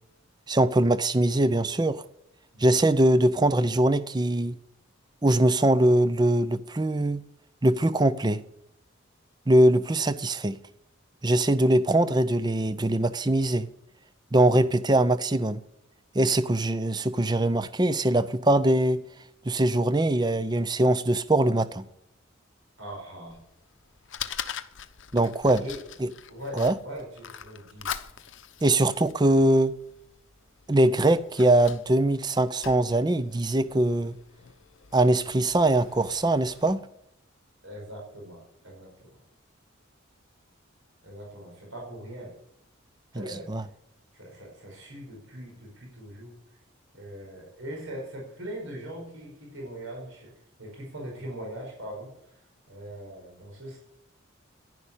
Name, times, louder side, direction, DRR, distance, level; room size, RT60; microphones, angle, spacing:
voice 1, 0.5-2.0 2.6-4.6 5.2-7.2 7.6-8.4 9.5-10.6 11.2-13.7 14.3-15.6 16.1-19.0 19.5-21.8 25.1-25.6 26.0-26.1 26.5-26.7 28.6-29.7 30.7-34.2 34.9-36.8 43.2-43.6, right 1 dB, 20° right, 0.6 m, -22 dB
voice 2, 22.8-23.4 25.6-25.8 26.3-27.9 37.6-39.2 41.0-42.3 43.1-43.5 44.1-46.4 46.9-50.3 50.6-52.1 52.7-53.8, right 1 dB, 80° right, 5.3 m, -41 dB
Fire, 23.3-36.7, left 8 dB, 65° left, 0.8 m, -43 dB
11.0 x 11.0 x 7.3 m
head